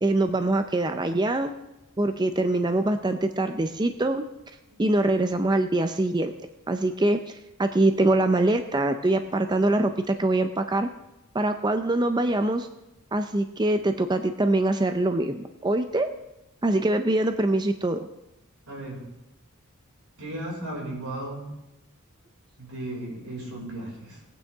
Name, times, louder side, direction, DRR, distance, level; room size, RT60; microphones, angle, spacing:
voice 1, 0.0-1.5 2.0-4.2 4.8-6.3 6.7-10.9 11.3-12.7 13.1-16.1 16.6-18.1, right 2 dB, 20° right, 8 dB, 0.5 m, -24 dB
voice 2, 18.7-19.0 20.2-21.4 22.6-24.2, right 1 dB, 90° right, -2 dB, 5.3 m, -35 dB
20.5 x 9.1 x 3.5 m, 0.93 s
head